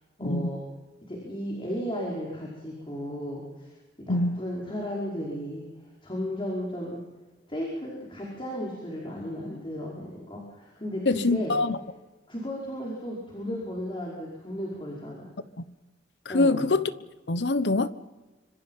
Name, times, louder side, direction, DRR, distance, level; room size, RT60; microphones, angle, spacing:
voice 1, 0.2-0.6 1.1-3.7 4.0-5.7 6.0-7.0 7.5-11.5 12.3-15.3 16.3-16.6, equal, 30° left, -2 dB, 5.2 m, -34 dB
voice 2, 4.1-4.4 11.1-11.8 16.3-16.9 17.3-17.9, left 2 dB, 75° left, 14 dB, 1.1 m, -24 dB
25.5 x 25.5 x 5.7 m, 1.2 s
head